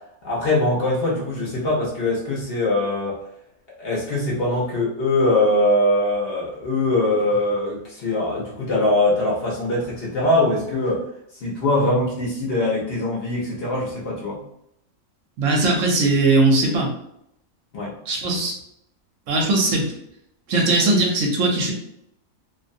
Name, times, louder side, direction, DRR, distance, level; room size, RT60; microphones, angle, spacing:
voice 1, 0.2-3.2 3.8-11.0 11.4-14.4 17.7-17.9, left 1 dB, 55° left, -4 dB, 0.8 m, -22 dB
voice 2, 15.4-16.9 18.1-18.5 19.3-19.9 20.5-21.7, right 2 dB, 70° right, 0 dB, 1.0 m, -19 dB
2.5 x 2.1 x 2.6 m, 0.76 s
omnidirectional pair, 1.4 m